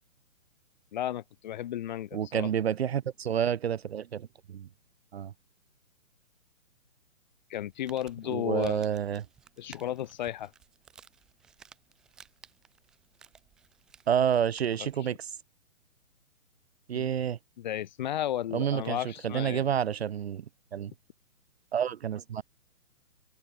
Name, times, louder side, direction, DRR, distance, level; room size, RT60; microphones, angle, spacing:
voice 1, 0.9-2.5 7.5-8.8 9.6-10.5 16.9-17.1 17.6-19.6, left 11 dB, 30° left, 1.0 m, -33 dB
voice 2, 2.1-4.7 5.1-5.3 8.3-9.2 14.1-15.3 16.9-17.4 18.5-20.4 20.7-20.9 21.7-22.4, right 9 dB, 45° right, 0.7 m, -29 dB
Crumpling crinkling, 7.6-15.0, right 7 dB, ahead, 0.5 m, -57 dB
hypercardioid pair, 145°, 43 cm